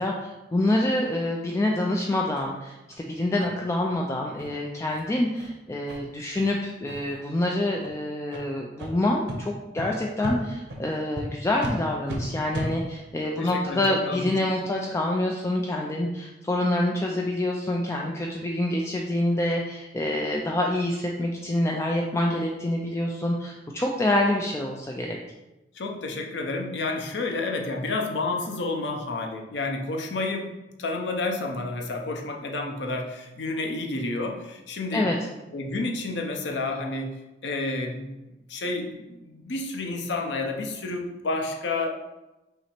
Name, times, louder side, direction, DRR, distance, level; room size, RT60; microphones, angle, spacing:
voice 1, 0.0-25.2 34.9-35.2, left 1 dB, 15° left, 0 dB, 0.3 m, -26 dB
sound 1, 2.4-2.5 2.9-3.0 3.4-3.5 3.9-4.0 4.4-4.5 4.9-5.0 5.4-5.5 5.9-6.0 6.4-6.5 6.9-7.2 7.8-7.9 8.3-8.4 8.8-8.9 9.3-9.4 9.8-9.9 10.2-10.4 10.7-10.8 11.2-11.3 11.6-11.7 12.1-12.2 12.5-12.7, equal, 80° right, 0.8 m, -35 dB
voice 2, 13.2-14.3 25.7-30.5 30.8-35.1 35.5-38.1 38.5-41.9, left 2 dB, 80° left, 2 dB, 0.6 m, -30 dB
5.7 x 2.0 x 4.3 m, 1.0 s
head